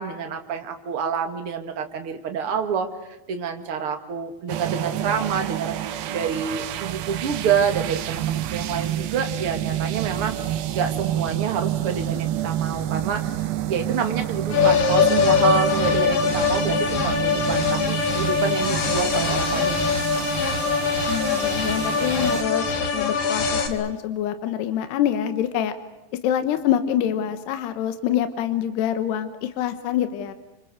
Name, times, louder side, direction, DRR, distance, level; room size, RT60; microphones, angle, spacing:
voice 1, 0.0-2.9 3.3-5.7 6.1-10.4 10.7-13.3 13.7-19.8 20.1-20.3 20.8-21.0, right 7 dB, 40° right, 6 dB, 2.5 m, -27 dB
sound 1, 4.5-22.4, right 12 dB, 80° right, 3.3 m, -29 dB
sound 2, 14.5-23.7, left 6 dB, 55° left, 3.7 m, -22 dB
voice 2, 21.1-25.8 26.1-30.3, left 10 dB, 80° left, 10 dB, 3.3 m, -25 dB
29.5 x 26.0 x 6.5 m, 0.99 s
omnidirectional pair, 4.9 m